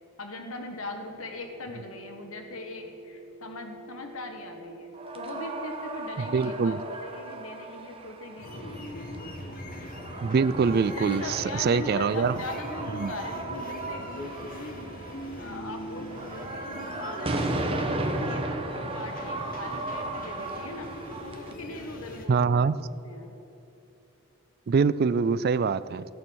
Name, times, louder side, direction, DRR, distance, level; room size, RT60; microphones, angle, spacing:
voice 1, 0.2-9.3 10.9-14.9 15.4-18.4 18.7-20.9 21.2-22.7 23.0-23.4, left 2 dB, 75° left, 5 dB, 1.3 m, -40 dB
sound 1, 0.7-5.5, right 2 dB, 65° right, 1.0 m, -49 dB
sound 2, 4.9-21.5, right 2 dB, 25° right, 1.1 m, -35 dB
voice 2, 6.2-6.8 10.2-12.4 13.0-13.1 22.3-22.8 24.7-26.0, right 5 dB, 45° right, 16 dB, 0.3 m, -24 dB
sound 3, 8.4-22.3, left 1 dB, 40° left, 1.3 m, -41 dB
15.0 x 9.1 x 6.3 m, 2.9 s
head